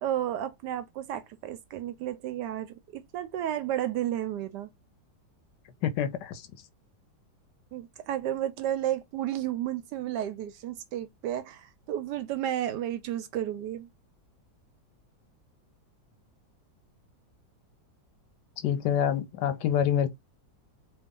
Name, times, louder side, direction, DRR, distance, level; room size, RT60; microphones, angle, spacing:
voice 1, 0.0-4.7 7.7-13.9, right 11 dB, 75° right, 1.1 m, -32 dB
voice 2, 5.8-6.5 18.6-20.1, left 9 dB, 75° left, 1.1 m, -27 dB
3.0 x 2.6 x 3.6 m
omnidirectional pair, 2.0 m